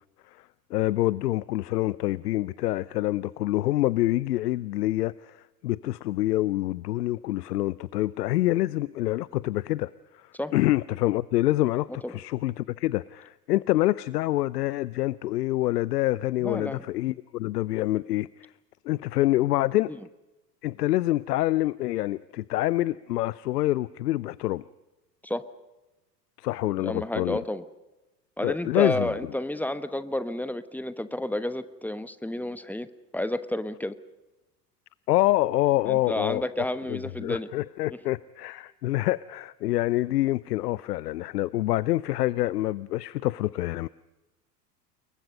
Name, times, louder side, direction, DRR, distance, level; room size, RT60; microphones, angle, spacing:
voice 1, 0.3-18.5 18.8-19.9 20.6-24.6 26.4-27.4 28.4-29.1 35.1-36.4 36.9-43.9, left 16 dB, 70° left, 21 dB, 0.7 m, -26 dB
voice 2, 16.4-16.8 25.2-25.4 26.8-27.6 28.4-32.9 33.1-33.9 35.9-37.5, left 1 dB, 5° left, 13 dB, 1.1 m, -30 dB
28.0 x 22.5 x 5.3 m, 1.0 s
figure-of-eight pair, 80°, 50 cm